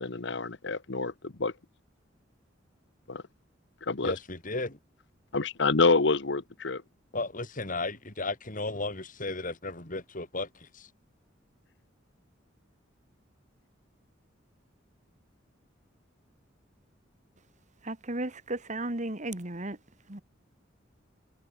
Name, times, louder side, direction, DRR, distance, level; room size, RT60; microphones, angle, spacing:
voice 1, 0.0-1.5 3.1-3.2 3.8-4.1 5.3-6.8, left 3 dB, 65° left, 1.2 m, -27 dB
voice 2, 4.0-4.8 7.1-10.9, left 2 dB, 45° left, 4.0 m, -34 dB
voice 3, 17.8-19.8 20.1-20.2, right 2 dB, 40° right, 2.6 m, -34 dB
head